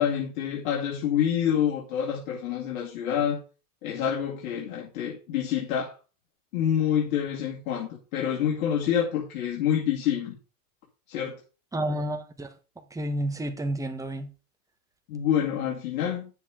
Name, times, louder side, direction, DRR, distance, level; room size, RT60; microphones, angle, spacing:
voice 1, 0.0-3.4 3.8-5.9 6.5-10.4 11.1-11.4 15.1-16.3, left 9 dB, 70° left, 2.3 m, -27 dB
voice 2, 11.7-12.5 12.9-14.3, right 1 dB, 5° right, 1.3 m, -30 dB
9.7 x 7.1 x 3.7 m
supercardioid pair, 115°, 45 cm